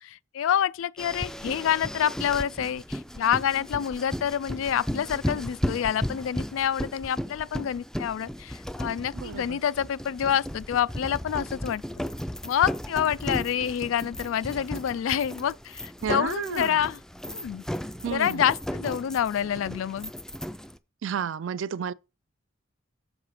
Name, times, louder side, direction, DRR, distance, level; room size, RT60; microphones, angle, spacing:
voice 1, 0.0-11.8 12.4-17.0 17.3-17.6 18.1-20.1, left 9 dB, 85° left, 0.3 m, -27 dB
sound 1, 1.0-20.8, equal, 5° left, 0.3 m, -35 dB
voice 2, 9.1-9.6 16.0-16.8 18.0-18.5 21.0-21.9, right 7 dB, 70° right, 0.4 m, -31 dB
7.1 x 4.8 x 4.8 m
head